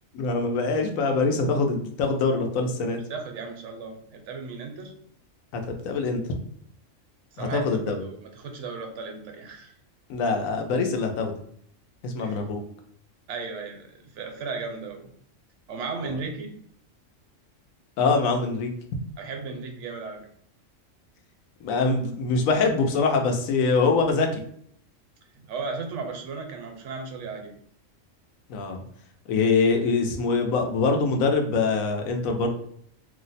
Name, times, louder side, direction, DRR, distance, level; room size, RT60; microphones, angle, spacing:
voice 1, 0.1-3.0 5.5-6.2 7.4-8.0 10.1-11.3 12.0-12.6 18.0-18.7 21.6-24.4 28.5-28.8 29.3-32.5, left 4 dB, 90° left, 4 dB, 1.0 m, -24 dB
voice 2, 3.1-4.9 7.3-9.8 12.2-12.4 13.3-15.1 15.7-16.5 19.2-20.3 25.4-27.5, right 4 dB, 70° right, 4 dB, 0.9 m, -35 dB
2.7 x 2.1 x 3.9 m, 0.65 s
omnidirectional pair, 1.4 m